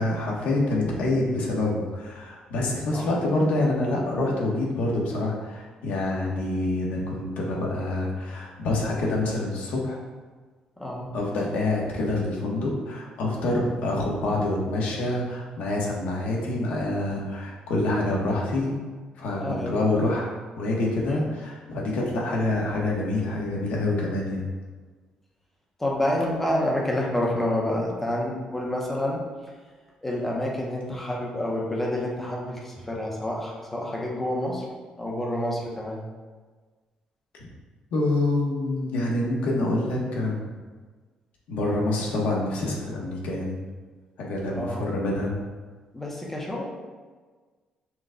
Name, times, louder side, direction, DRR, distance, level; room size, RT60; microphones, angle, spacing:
voice 1, 0.0-10.0 11.1-18.8 19.2-20.3 20.6-24.4 37.9-40.5 41.5-43.6 44.2-45.3, left 2 dB, 80° left, -2 dB, 1.0 m, -26 dB
voice 2, 10.8-11.2 19.4-19.8 25.8-29.2 30.0-34.6 35.0-36.0 44.5-44.9 45.9-46.6, left 1 dB, 10° left, -2 dB, 0.7 m, -28 dB
5.9 x 2.2 x 3.7 m, 1.4 s
cardioid pair, 180°, 2 cm